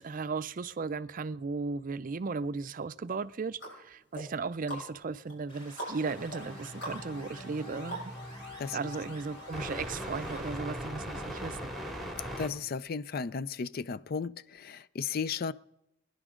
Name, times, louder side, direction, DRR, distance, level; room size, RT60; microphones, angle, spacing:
voice 1, 0.0-8.1 8.7-11.8, right 4 dB, 45° right, 0.5 m, -36 dB
sound 1, 3.1-8.5 8.9-9.0, right 1 dB, 70° left, 6.2 m, -44 dB
sound 2, 5.5-10.6, equal, 30° left, 6.6 m, -52 dB
sound 3, 6.0-12.5, equal, ahead, 2.2 m, -41 dB
voice 2, 12.4-15.5, left 5 dB, 55° left, 0.4 m, -34 dB
25.5 x 10.5 x 3.7 m
head